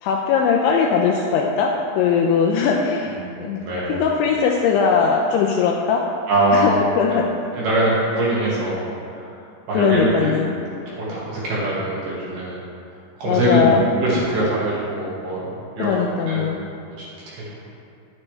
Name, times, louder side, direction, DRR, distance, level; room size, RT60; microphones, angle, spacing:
voice 1, 0.0-3.6 3.9-6.0 6.5-7.3 9.7-10.6 13.3-13.8 15.8-16.6, left 6 dB, 85° left, 1 dB, 2.7 m, -20 dB
voice 2, 3.2-4.0 6.3-6.6 7.0-7.1 7.5-8.8 9.1-10.4 10.9-12.6 13.2-15.9 16.3-16.5 17.3-17.6, right 1 dB, 60° right, -7 dB, 3.1 m, -23 dB
11.0 x 10.5 x 3.3 m, 2.5 s
omnidirectional pair, 5.8 m